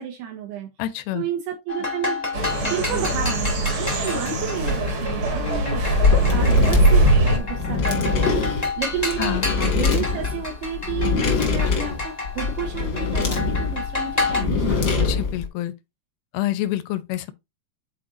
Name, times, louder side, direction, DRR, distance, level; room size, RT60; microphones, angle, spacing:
voice 1, 0.0-0.7 1.1-2.2 2.6-8.5 8.8-15.2, right 7 dB, 75° right, 2.8 m, -31 dB
voice 2, 0.8-1.2 9.2-9.5 15.0-15.7 16.3-17.3, left 14 dB, 80° left, 2.3 m, -27 dB
sound 1, 1.7-14.4, left 3 dB, 35° left, 0.6 m, -30 dB
sound 2, 2.3-7.4, right 2 dB, 50° right, 1.6 m, -21 dB
sound 3, 5.9-15.5, left 5 dB, 55° left, 1.1 m, -23 dB
10.0 x 4.2 x 2.5 m
omnidirectional pair, 4.8 m